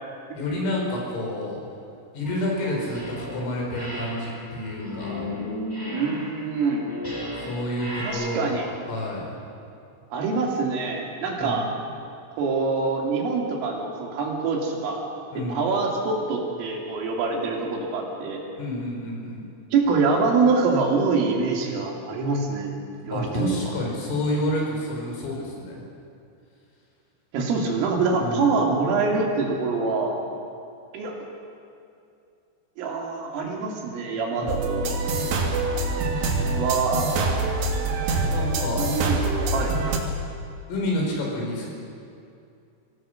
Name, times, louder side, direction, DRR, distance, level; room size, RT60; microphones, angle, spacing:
voice 1, 0.4-1.6 2.1-5.2 7.3-9.4 11.4-11.8 15.3-15.7 18.6-19.5 23.1-25.9 28.2-28.6 34.4-35.1 38.3-38.9 40.7-41.7, left 1 dB, 85° left, -2 dB, 7.5 m, -29 dB
sound 1, 2.2-3.4 3.7-8.1, left 1 dB, 5° right, 4.9 m, -34 dB
voice 2, 5.9-6.8 8.0-8.7 10.1-11.7 12.4-15.0 15.4-18.4 19.7-22.8 23.0-23.6 27.3-30.2 30.9-31.2 32.8-34.9 36.5-37.1 38.7-39.2 39.5-39.7, right 4 dB, 85° right, 0 dB, 5.3 m, -25 dB
sound 2, 34.5-40.0, right 2 dB, 65° right, 4.0 m, -25 dB
24.5 x 17.5 x 6.6 m, 2.5 s
omnidirectional pair, 5.7 m